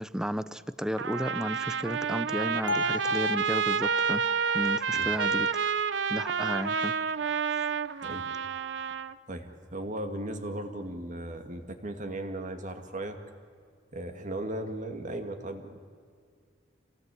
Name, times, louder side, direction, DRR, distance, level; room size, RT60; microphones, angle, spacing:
voice 1, 0.0-4.2 4.5-5.7 6.1-6.9, equal, 5° right, 15 dB, 0.6 m, -33 dB
Trumpet, 1.0-9.1, right 6 dB, 70° right, 0.7 m, -29 dB
Bell, 2.7-6.7, left 2 dB, 45° left, 0.7 m, -36 dB
voice 2, 9.3-13.2 13.9-15.8, right 1 dB, 40° right, 6 dB, 2.2 m, -37 dB
27.0 x 18.0 x 8.5 m, 2.1 s
head